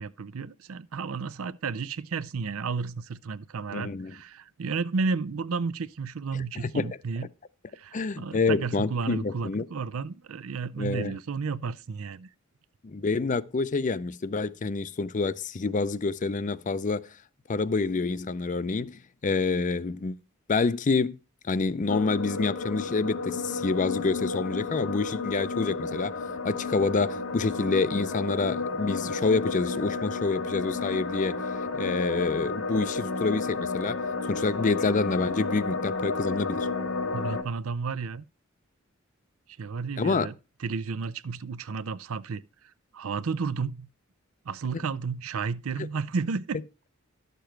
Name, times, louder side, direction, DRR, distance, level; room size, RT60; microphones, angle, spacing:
voice 1, 0.0-7.3 7.7-12.3 37.1-38.2 39.6-40.3 40.6-42.4 42.9-43.9 44.5-46.6, right 5 dB, 80° right, 0.5 m, -32 dB
voice 2, 3.7-4.1 6.6-7.0 7.9-9.7 10.8-11.2 12.8-17.0 17.5-20.2 20.5-21.2 21.4-26.1 26.4-31.4 31.8-34.0 34.2-36.7 40.0-40.3, left 4 dB, 35° left, 0.5 m, -27 dB
sound 1, 21.9-37.4, left 4 dB, 70° left, 1.6 m, -32 dB
11.5 x 6.8 x 4.5 m
head